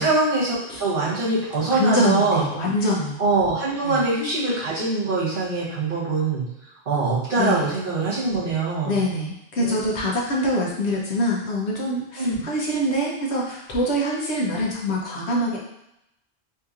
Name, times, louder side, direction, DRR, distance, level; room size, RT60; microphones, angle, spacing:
voice 1, 0.0-2.4 3.2-6.4 6.8-9.0 9.6-9.8 12.2-12.4, right 3 dB, 55° right, -9 dB, 1.6 m, -23 dB
voice 2, 1.7-3.2 3.8-4.1 7.4-7.7 8.8-15.6, equal, 85° left, -4 dB, 1.2 m, -24 dB
4.3 x 2.8 x 2.5 m, 0.83 s
omnidirectional pair, 1.1 m